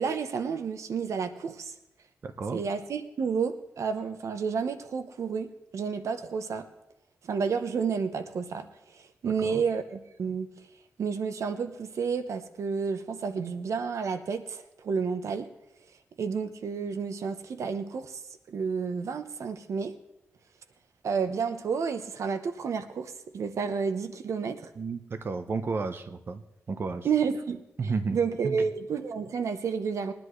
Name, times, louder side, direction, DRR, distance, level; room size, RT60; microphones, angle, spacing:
voice 1, 0.0-1.7 2.5-5.5 5.7-6.7 7.2-8.7 8.9-10.5 11.0-15.5 16.2-18.2 18.5-19.9 21.0-24.7 27.0-30.1, right 6 dB, 80° right, 9 dB, 0.8 m, -30 dB
voice 2, 2.2-2.6 9.2-9.6 24.8-26.4 26.7-27.1 27.8-28.2 28.4-28.6, right 4 dB, 50° right, 8 dB, 0.7 m, -32 dB
21.5 x 10.5 x 3.2 m, 0.88 s
wide cardioid pair, 125°, 5 cm